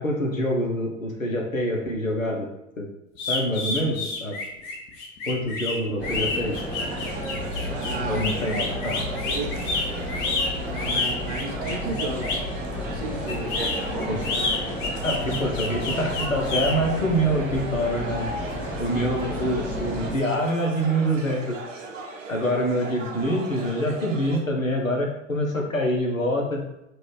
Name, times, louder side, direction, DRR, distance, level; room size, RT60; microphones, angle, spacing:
voice 1, 0.0-2.5 2.8-2.9 3.3-4.4 5.3-6.6 8.1-9.2 14.1-14.3 15.0-18.3 18.8-21.6 22.3-26.6, equal, 90° left, 1 dB, 0.8 m, -25 dB
sound 1, 3.2-12.5 13.3-16.7, left 3 dB, 30° left, 0.6 m, -29 dB
sound 2, 6.0-20.2, equal, 5° right, 1.5 m, -32 dB
sound 3, 6.5-24.4, right 3 dB, 75° right, 0.7 m, -38 dB
voice 2, 7.7-8.2 9.2-9.6 10.6-12.4 12.9-13.5, right 3 dB, 25° right, 1 dB, 0.6 m, -33 dB
3.9 x 2.5 x 3.2 m, 0.88 s
figure-of-eight pair, 90°, 39 cm